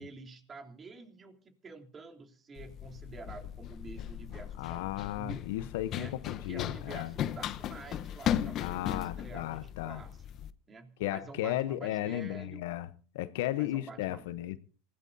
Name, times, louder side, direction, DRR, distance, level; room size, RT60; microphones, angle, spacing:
voice 1, 0.0-5.5 5.9-6.2 6.4-10.3 10.7-12.7 13.6-14.2, right 4 dB, 25° right, 3.2 m, -48 dB
Run, 2.6-10.5, left 10 dB, 45° left, 0.9 m, -37 dB
voice 2, 4.6-7.1 8.6-10.0 11.0-12.9 13.1-14.6, left 14 dB, 70° left, 0.9 m, -35 dB
27.0 x 16.5 x 2.7 m
hypercardioid pair, 95°, 0 cm